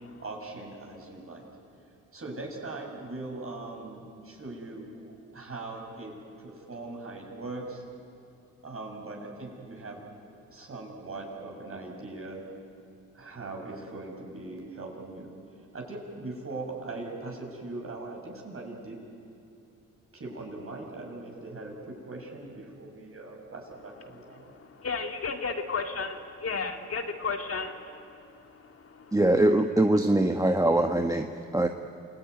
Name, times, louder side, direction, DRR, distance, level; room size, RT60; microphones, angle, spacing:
voice 1, 0.2-1.5 1.7-7.8 8.6-10.0 10.5-12.4 13.1-19.0 20.1-24.5, right 2 dB, 40° right, 0 dB, 7.1 m, -40 dB
voice 2, 24.5-29.2, left 4 dB, 45° left, 4 dB, 2.3 m, -34 dB
voice 3, 29.1-31.3 31.5-31.7, right 1 dB, 10° right, 5 dB, 1.3 m, -22 dB
28.0 x 18.0 x 9.7 m, 2.6 s
supercardioid pair, 65°, 33 cm